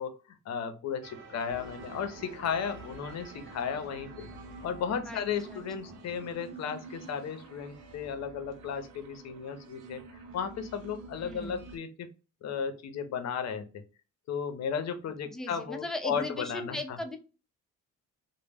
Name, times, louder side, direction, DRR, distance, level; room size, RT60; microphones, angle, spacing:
voice 1, 0.0-4.3 4.6-10.0 10.3-12.1 12.4-13.8 14.3-17.0, left 7 dB, 60° left, 8 dB, 0.6 m, -35 dB
sound 1, 1.0-7.8, right 2 dB, 40° right, 0.9 m, -52 dB
sound 2, 1.5-11.8, right 3 dB, 80° right, 0.7 m, -49 dB
voice 2, 5.1-5.6 11.2-11.6 15.3-17.2, left 1 dB, ahead, 4 dB, 0.4 m, -38 dB
2.1 x 2.0 x 3.3 m, 0.32 s
cardioid pair, 90°, 30 cm